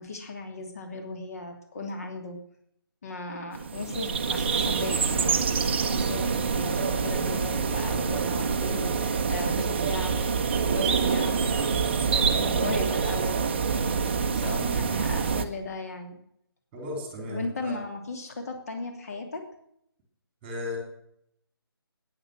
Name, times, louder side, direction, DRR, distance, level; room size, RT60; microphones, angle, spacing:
voice 1, 0.0-2.4 3.0-5.5 5.9-13.4 13.7-14.2 14.4-16.2 17.3-19.5, left 3 dB, 35° left, 4 dB, 2.8 m, -37 dB
sound 1, 3.5-15.4, right 5 dB, 25° right, 0.8 m, -26 dB
voice 2, 16.7-17.7 20.4-20.8, left 2 dB, 10° right, 2 dB, 3.0 m, -35 dB
14.5 x 9.8 x 6.4 m, 0.72 s
figure-of-eight pair, 150°, 13 cm